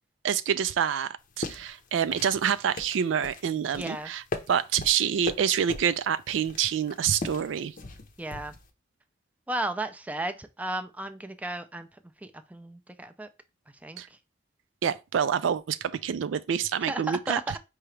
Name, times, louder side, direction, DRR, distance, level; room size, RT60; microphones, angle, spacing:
voice 1, 0.2-7.7 14.0-14.1 14.8-17.4, right 8 dB, 90° right, 0.4 m, -27 dB
sound 1, 1.2-8.7, left 3 dB, 45° left, 0.6 m, -40 dB
voice 2, 3.8-4.1 8.2-8.5 9.5-11.9 12.2-13.3 13.7-14.0 16.8-17.6, right 2 dB, 10° right, 0.4 m, -34 dB
4.7 x 2.9 x 3.2 m
head